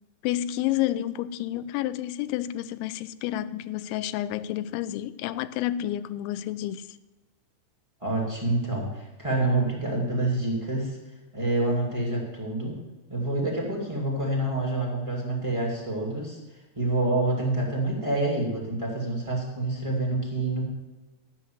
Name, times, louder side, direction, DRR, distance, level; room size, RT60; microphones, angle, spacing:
voice 1, 0.2-7.0, left 13 dB, 85° left, 2.9 m, -30 dB
voice 2, 8.0-11.0 11.3-12.8 13.1-16.4 16.7-20.6, right 2 dB, 20° right, 0.9 m, -27 dB
13.0 x 5.9 x 7.8 m
omnidirectional pair, 5.2 m